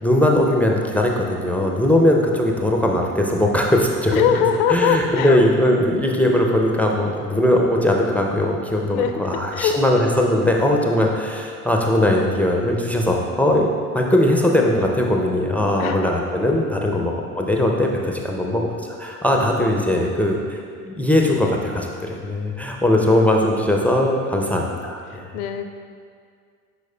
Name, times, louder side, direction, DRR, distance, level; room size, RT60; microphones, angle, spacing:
voice 1, 0.0-25.3, left 1 dB, 5° left, 0 dB, 0.5 m, -20 dB
voice 2, 4.1-5.4 8.9-9.8 11.0-11.1 15.8-16.1 16.9-17.1 19.3-19.4 25.1-25.7, left 7 dB, 70° left, 7 dB, 0.6 m, -22 dB
11.0 x 4.7 x 2.2 m, 2.2 s
hypercardioid pair, 70°, 45 cm